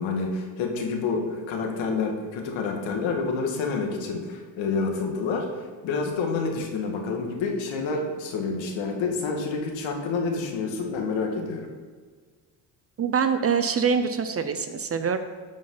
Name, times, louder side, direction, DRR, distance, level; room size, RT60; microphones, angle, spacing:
voice 1, 0.0-11.7, left 4 dB, 70° left, 2 dB, 1.8 m, -28 dB
voice 2, 13.0-15.2, right 6 dB, 30° right, 9 dB, 0.5 m, -24 dB
14.5 x 5.2 x 3.9 m, 1.5 s
cardioid pair, 105°, 47 cm